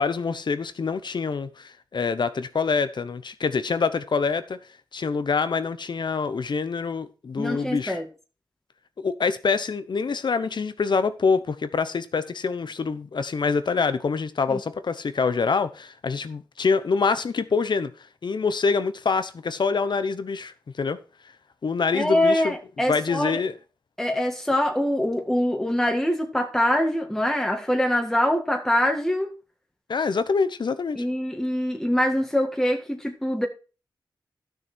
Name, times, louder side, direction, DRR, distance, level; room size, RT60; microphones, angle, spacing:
voice 1, 0.0-4.6 4.9-8.0 9.0-17.9 18.2-21.0 21.6-22.5 22.9-23.5 29.9-31.0, left 5 dB, 70° left, 1.0 m, -25 dB
voice 2, 7.4-8.0 14.5-14.6 21.9-23.4 24.0-29.3 31.0-33.5, left 1 dB, 5° left, 1.9 m, -24 dB
12.0 x 6.6 x 4.5 m
cardioid pair, 55°, 8 cm